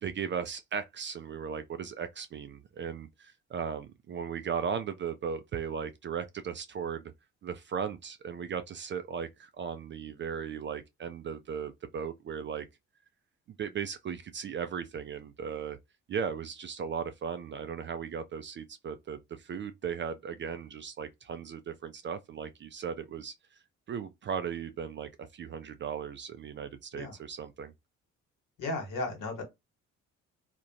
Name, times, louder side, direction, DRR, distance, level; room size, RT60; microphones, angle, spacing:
voice 1, 0.0-7.0 7.4-12.6 13.6-15.8 16.1-23.3 23.9-27.7, right 7 dB, 35° right, 0.4 m, -37 dB
voice 2, 28.6-29.4, left 2 dB, 60° left, 1.3 m, -34 dB
2.4 x 2.2 x 2.7 m
hypercardioid pair, 50°, 36 cm